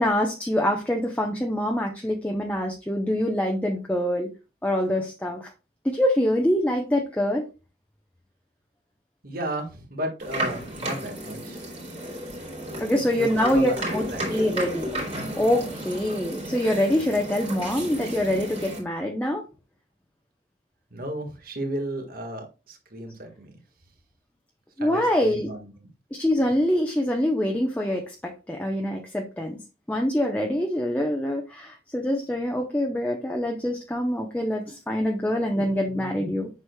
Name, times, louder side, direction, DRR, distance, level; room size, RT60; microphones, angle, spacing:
voice 1, 0.0-4.3 4.6-5.5 5.8-7.5 12.8-14.0 14.3-14.9 15.4-19.4 24.8-25.5 26.1-29.6 29.9-36.5, left 1 dB, 10° left, 0.7 m, -25 dB
voice 2, 9.2-11.7 12.9-14.4 20.9-23.5 24.8-25.7, right 1 dB, 55° right, 1.6 m, -34 dB
sound 1, 10.2-18.8, right 1 dB, 35° right, 2.7 m, -33 dB
7.8 x 6.1 x 2.3 m
head